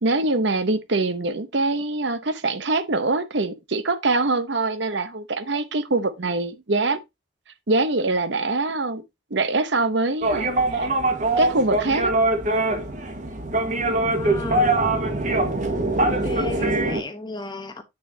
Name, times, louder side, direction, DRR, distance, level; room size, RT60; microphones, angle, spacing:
voice 1, 0.0-7.0 7.7-9.0 9.3-10.9 11.4-12.1, right 3 dB, 60° right, 0.9 m, -23 dB
sound 1, 10.2-17.0, right 2 dB, 40° right, 1.6 m, -22 dB
voice 2, 14.1-14.8 15.9-17.8, left 2 dB, 20° left, 1.2 m, -35 dB
8.1 x 6.9 x 2.8 m
head